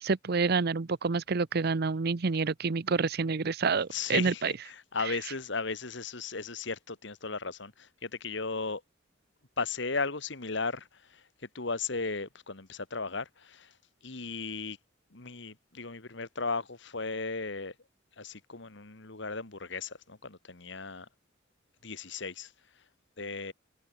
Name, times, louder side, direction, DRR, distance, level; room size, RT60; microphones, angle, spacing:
voice 1, 0.0-4.5 5.1-5.2, right 4 dB, 55° right, 0.7 m, -28 dB
voice 2, 3.9-4.5 4.9-8.8 9.6-10.9 11.1-11.2 11.5-13.7 14.0-14.8 15.1-17.7 18.2-21.1 21.8-22.5 23.2-23.5, left 4 dB, 65° left, 2.0 m, -36 dB
open air
head